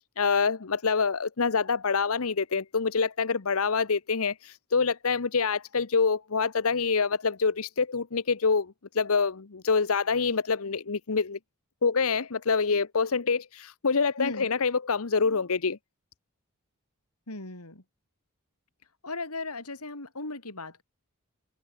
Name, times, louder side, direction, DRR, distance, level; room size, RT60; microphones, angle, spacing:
voice 1, 0.2-11.4 11.8-15.8, left 5 dB, 65° left, 0.9 m, -26 dB
voice 2, 14.2-14.5 17.3-17.8 19.0-20.8, left 2 dB, 90° left, 5.5 m, -37 dB
head